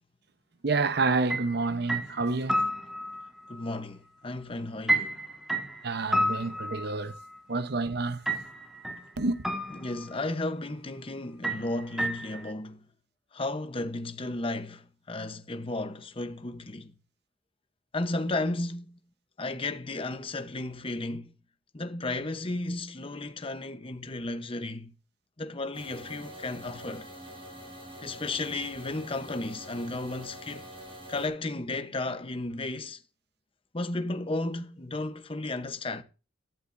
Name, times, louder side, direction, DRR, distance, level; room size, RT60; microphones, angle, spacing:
voice 1, 0.6-2.6 5.8-7.2 7.5-8.2 9.2-9.4, right 3 dB, 60° right, 0.8 m, -28 dB
sound 1, 1.3-1.5 1.9-3.3 4.9-7.2 8.3-9.1 9.4-10.3 11.4-12.5, right 1 dB, ahead, 1.7 m, -30 dB
voice 2, 3.5-5.2 9.7-12.8 13.3-16.9 17.9-18.9 19.4-21.3 21.7-24.9 25.4-27.1 28.0-30.7 31.1-33.0 33.7-36.0, left 2 dB, 30° left, 0.9 m, -34 dB
sound 2, 25.7-31.3, equal, 30° right, 7.8 m, -45 dB
16.0 x 11.5 x 2.6 m
head